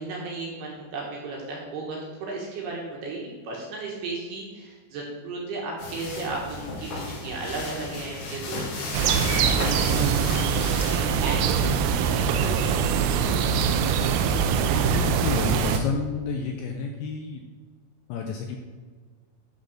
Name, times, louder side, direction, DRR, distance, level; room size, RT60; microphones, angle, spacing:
voice 1, 0.0-10.1 10.9-13.2, right 3 dB, 65° right, -2 dB, 2.8 m, -35 dB
sound 1, 5.8-11.0, left 2 dB, 65° left, 4.4 m, -34 dB
sound 2, 8.9-15.8, right 6 dB, 85° right, 3.3 m, -23 dB
voice 2, 14.9-17.4 18.1-18.6, left 5 dB, 85° left, 2 dB, 2.6 m, -30 dB
11.5 x 4.2 x 6.5 m, 1.5 s
omnidirectional pair, 5.9 m